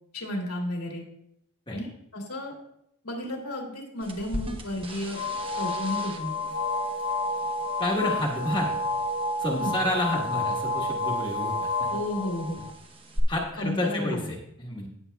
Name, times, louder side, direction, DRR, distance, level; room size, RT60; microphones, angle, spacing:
voice 1, 0.1-1.0 1.7-2.5 3.0-5.2 5.6-6.4 9.6-9.7 11.9-12.6 13.6-14.2, left 1 dB, 85° left, -1 dB, 2.6 m, -32 dB
sound 1, 4.0-13.2, right 1 dB, 25° right, 1.0 m, -42 dB
sound 2, 5.1-12.7, left 2 dB, 40° left, 0.7 m, -30 dB
voice 2, 7.8-8.7 9.4-11.7 13.3-14.9, left 1 dB, 20° left, -2 dB, 1.4 m, -29 dB
15.5 x 7.5 x 2.3 m, 0.76 s
head